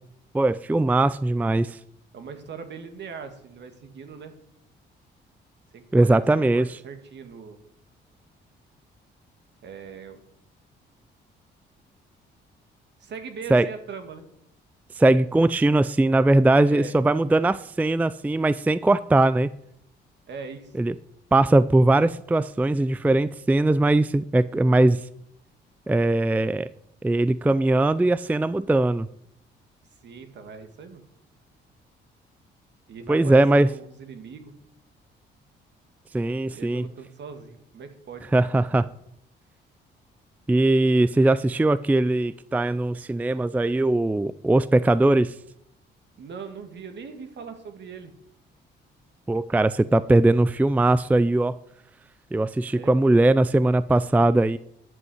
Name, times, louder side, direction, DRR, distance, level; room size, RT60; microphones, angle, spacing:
voice 1, 0.3-1.8 5.9-6.8 13.5-13.7 14.9-19.5 20.8-20.9 21.3-25.1 25.9-26.7 27.0-29.1 33.1-33.7 36.1-36.9 38.3-38.9 40.5-45.3 49.3-51.6 52.3-54.6, right 2 dB, 10° right, 17 dB, 0.4 m, -20 dB
voice 2, 2.1-4.3 5.7-6.1 6.4-7.6 9.6-10.2 13.0-14.2 16.7-16.9 20.3-20.7 30.0-31.0 32.9-34.5 36.5-38.3 46.2-48.1 52.7-52.9, right 5 dB, 60° right, 7 dB, 2.2 m, -40 dB
11.0 x 8.4 x 8.0 m, 0.73 s
cardioid pair, 90°, 20 cm